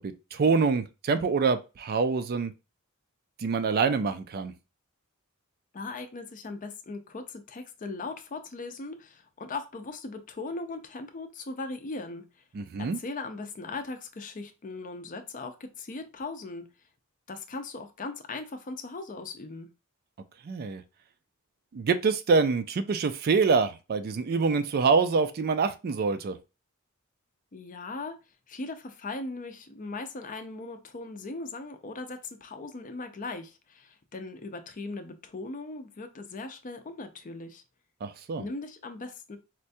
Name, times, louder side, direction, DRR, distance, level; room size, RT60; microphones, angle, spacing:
voice 1, 0.0-2.5 3.4-4.5 12.5-13.0 20.4-20.8 21.7-26.4 38.0-38.5, right 4 dB, 45° right, 0.4 m, -26 dB
voice 2, 5.7-12.2 12.8-16.7 17.3-19.7 27.5-28.2 28.5-37.6 38.4-39.4, left 3 dB, 40° left, 0.5 m, -39 dB
4.3 x 2.2 x 2.6 m
head